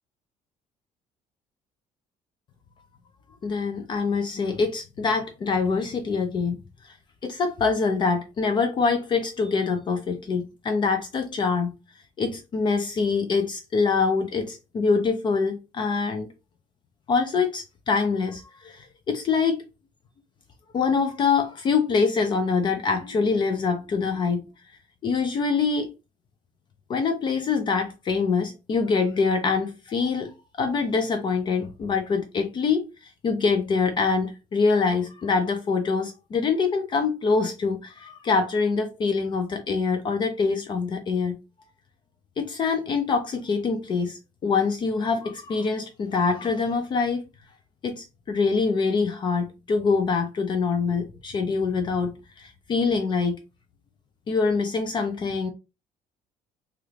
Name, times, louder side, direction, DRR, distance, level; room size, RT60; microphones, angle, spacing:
voice 1, 3.4-6.6 6.8-6.9 7.2-11.7 12.2-16.3 17.1-19.6 20.7-24.4 25.0-25.9 26.9-41.4 42.4-47.2 47.8-53.4 54.3-55.5, left 4 dB, 35° left, 0.5 m, -25 dB
3.0 x 2.4 x 3.2 m
cardioid pair, 145°, 14 cm